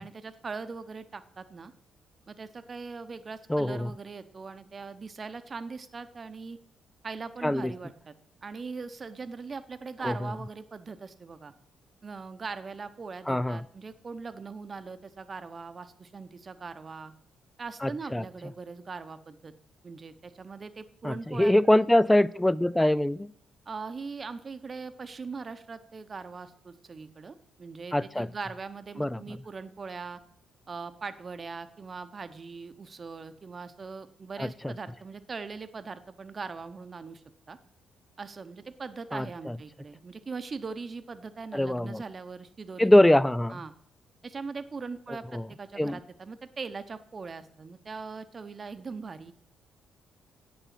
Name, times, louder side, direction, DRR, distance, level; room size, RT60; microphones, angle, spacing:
voice 1, 0.0-1.7 2.3-6.6 7.0-8.1 8.4-11.5 12.0-17.1 17.6-19.5 19.8-21.9 23.7-30.2 30.7-37.6 38.2-43.1 43.5-43.7 44.2-49.3, right 4 dB, 35° right, 11 dB, 0.9 m, -40 dB
voice 2, 3.5-3.9 7.4-7.7 10.0-10.1 13.3-13.6 17.8-18.2 21.0-23.3 27.9-28.3 29.0-29.2 34.4-34.7 39.1-39.6 41.5-42.0 42.8-43.6 45.3-45.5 45.8-46.0, left 1 dB, 10° left, 19 dB, 0.4 m, -23 dB
8.6 x 7.0 x 7.6 m, 0.66 s
cardioid pair, 90°, 0 cm